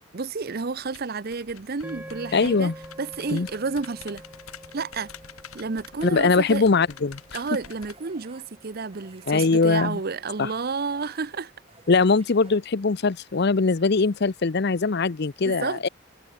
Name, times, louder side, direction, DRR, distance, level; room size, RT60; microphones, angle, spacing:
voice 1, 0.1-2.7 3.0-4.2 4.7-5.1 5.5-6.6 7.3-11.5 15.4-15.9, right 4 dB, 45° right, 0.6 m, -31 dB
sound 1, 0.8-8.0, left 7 dB, 85° left, 4.5 m, -47 dB
sound 2, 1.8-10.2, equal, 10° right, 7.3 m, -47 dB
voice 2, 2.3-2.7 3.3-3.5 6.0-7.2 9.3-10.0 10.4-10.5 11.9-15.9, left 4 dB, 50° left, 0.6 m, -21 dB
sound 3, 7.5-13.0, right 3 dB, 25° right, 3.7 m, -54 dB
head